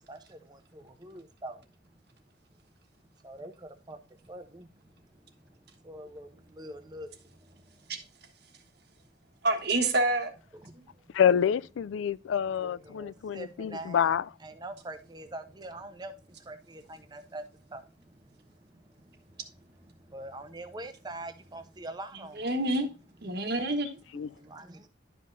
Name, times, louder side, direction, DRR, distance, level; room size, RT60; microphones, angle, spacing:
voice 1, 0.0-1.9 2.4-2.5 3.0-8.0 8.5-9.4 10.5-11.1 12.4-22.5 23.3-23.6 24.3-24.9, right 1 dB, 20° right, 0.8 m, -45 dB
voice 2, 9.4-10.3 22.4-22.9 23.2-24.0, right 2 dB, 60° right, 1.3 m, -27 dB
voice 3, 11.1-14.2 24.1-24.3, left 8 dB, 90° left, 0.3 m, -27 dB
11.0 x 5.5 x 2.6 m
head